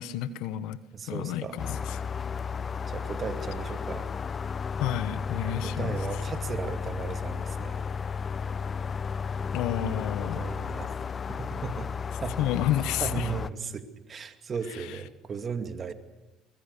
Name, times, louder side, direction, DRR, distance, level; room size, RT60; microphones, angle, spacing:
voice 1, 0.0-0.8 1.1-2.0 4.8-6.0 9.5-10.5 12.4-13.3 14.7-15.0, left 12 dB, 75° left, 1.1 m, -30 dB
voice 2, 0.9-1.6 2.9-4.1 5.4-7.8 10.2-11.0 11.3-11.9 12.2-12.5 13.0-15.9, right 6 dB, 40° right, 2.4 m, -36 dB
sound 1, 1.6-13.5, left 6 dB, 40° left, 0.8 m, -33 dB
23.0 x 20.5 x 6.8 m
hypercardioid pair, 70°, 0 cm